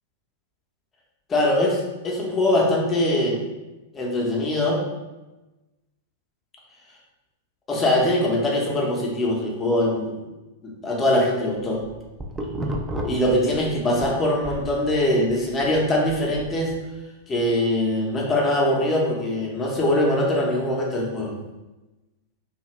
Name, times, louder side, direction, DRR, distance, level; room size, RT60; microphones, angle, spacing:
voice 1, 1.3-3.4 3.9-4.8 7.7-10.2 10.6-11.8 13.0-16.7 17.3-21.4, left 1 dB, 20° left, -1 dB, 0.7 m, -22 dB
sound 1, 11.7-14.1 14.4-16.8, equal, 10° right, 0.4 m, -33 dB
2.7 x 2.4 x 3.0 m, 1.1 s
hypercardioid pair, 100°, 0 cm